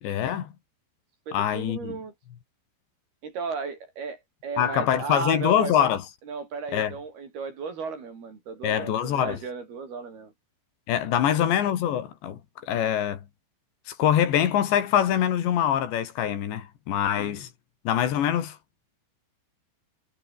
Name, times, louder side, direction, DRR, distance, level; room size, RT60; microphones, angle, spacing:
voice 1, 0.0-0.5 1.3-2.0 4.6-6.0 6.7-6.9 8.6-9.4 10.9-13.2 13.9-17.5 17.9-18.6, left 10 dB, 70° left, 4.5 m, -24 dB
voice 2, 1.3-2.1 3.2-5.9 6.3-10.3 11.1-11.6, right 5 dB, 55° right, 6.4 m, -35 dB
omnidirectional pair, 5.3 m